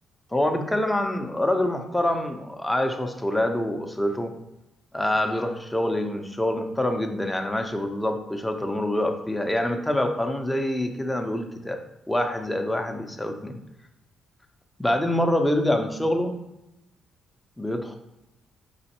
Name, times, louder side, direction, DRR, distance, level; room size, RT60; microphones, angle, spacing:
voice 1, 0.3-4.3 4.9-11.8 12.1-13.6 14.8-16.4 17.6-18.0, left 1 dB, 10° left, 5 dB, 0.5 m, -26 dB
5.0 x 3.1 x 2.9 m, 0.89 s
cardioid pair, 90°, 0 cm